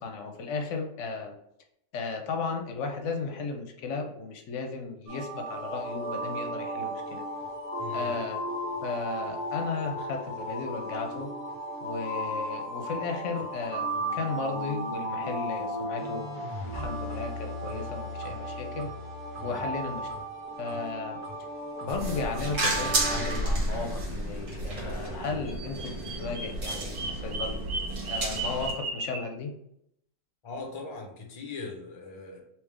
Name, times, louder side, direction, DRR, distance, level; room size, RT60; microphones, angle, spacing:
voice 1, 0.0-1.3 1.9-7.2 7.9-8.4 8.8-11.3 11.8-13.8 14.1-18.9 19.4-20.1 20.6-21.2 21.8-27.6 28.1-29.5, left 4 dB, 70° left, 4 dB, 0.9 m, -35 dB
sound 1, 5.1-23.4, equal, 10° right, 1.3 m, -35 dB
voice 2, 7.8-8.1 19.4-19.7 30.4-32.4, left 3 dB, 30° left, 2 dB, 0.6 m, -40 dB
sound 2, 21.9-28.7, right 1 dB, 70° right, 1.6 m, -32 dB
Bird vocalization bird call bird song, 25.5-29.3, right 3 dB, 55° right, 0.6 m, -36 dB
3.5 x 2.9 x 3.2 m, 0.76 s
omnidirectional pair, 1.3 m